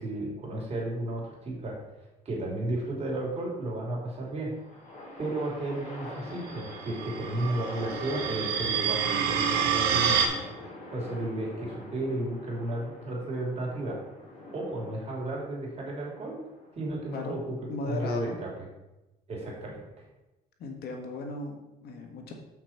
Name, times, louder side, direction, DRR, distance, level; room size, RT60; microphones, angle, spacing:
voice 1, 0.0-1.8 2.2-4.5 5.2-10.4 10.9-14.0 14.5-16.3 16.7-17.6 17.8-18.6 19.3-19.8, right 1 dB, 40° right, -2 dB, 3.0 m, -33 dB
sound 1, 4.4-17.8, left 1 dB, 45° left, 2.5 m, -45 dB
sound 2, 6.7-10.3, right 8 dB, 80° right, 1.2 m, -28 dB
voice 2, 17.1-18.4 20.6-22.3, left 3 dB, 70° left, 3 dB, 1.5 m, -37 dB
7.4 x 6.0 x 4.5 m, 0.99 s
cardioid pair, 110°, 17 cm